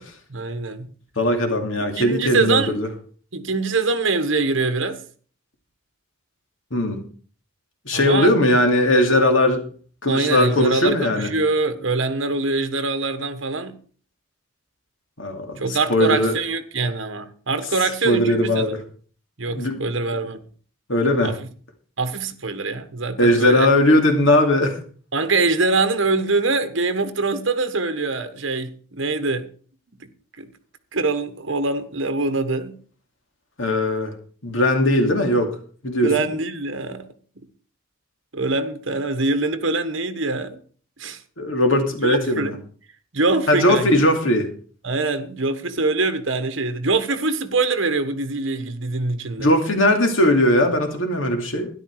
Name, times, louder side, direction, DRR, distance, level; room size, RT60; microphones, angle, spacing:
voice 1, 0.3-0.9 2.0-2.8 3.3-5.0 7.9-8.3 10.1-13.8 15.6-18.8 19.4-20.4 21.2-21.4 22.0-23.7 25.1-29.5 30.0-30.1 30.4-30.5 30.9-32.8 36.0-37.1 38.3-40.6 41.0-41.2 42.0-42.6 43.1-43.9 44.8-49.5, right 3 dB, 65° right, 1.3 m, -23 dB
voice 2, 1.2-2.9 6.7-7.0 7.9-9.6 10.0-11.3 15.2-16.3 18.0-18.8 19.5-19.9 20.9-21.3 23.2-24.8 33.6-34.1 34.4-35.5 35.8-36.1 41.4-42.5 43.5-44.5 49.4-51.7, left 1 dB, 70° left, 2.5 m, -19 dB
13.0 x 11.0 x 4.8 m
head